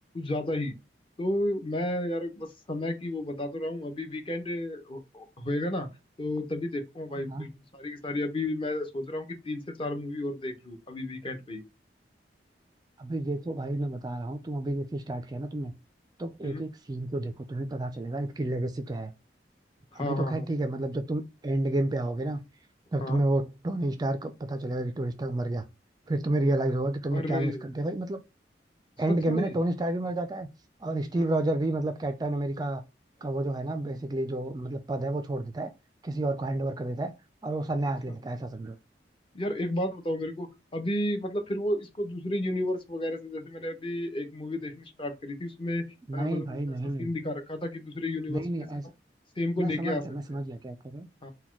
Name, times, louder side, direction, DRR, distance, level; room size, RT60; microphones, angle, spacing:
voice 1, 0.1-0.7 1.2-5.9 6.2-11.6 16.4-16.6 19.9-20.5 23.0-23.2 27.1-27.6 29.1-29.5 31.1-31.3 38.1-38.2 39.3-45.9 46.1-46.6 47.0-48.7 49.4-50.0 50.3-50.4 51.2-51.3, left 1 dB, 30° left, 0.7 m, -32 dB
voice 2, 13.0-15.7 16.2-19.1 19.9-22.4 22.9-25.6 26.1-28.2 29.0-30.5 30.8-32.8 33.2-35.7 36.0-37.1 37.4-38.8 46.1-47.1 48.3-48.8 49.6-51.1, right 1 dB, 25° right, 0.3 m, -30 dB
4.0 x 2.2 x 4.4 m
head